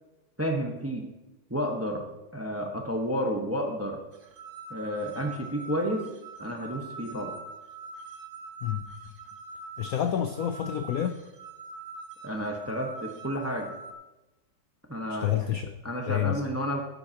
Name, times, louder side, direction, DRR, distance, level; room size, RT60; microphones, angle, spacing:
voice 1, 0.4-1.1 1.5-2.0 2.3-4.0 4.7-6.1 6.4-7.4 12.2-13.7 14.9-15.3 15.8-16.8, equal, 10° right, 2 dB, 0.8 m, -31 dB
sound 1, 4.1-13.9, right 4 dB, 40° right, 0.8 m, -43 dB
voice 2, 9.8-11.2 15.1-15.7 16.1-16.4, left 10 dB, 80° left, 8 dB, 0.8 m, -28 dB
15.0 x 8.1 x 2.9 m, 1.0 s
omnidirectional pair, 2.2 m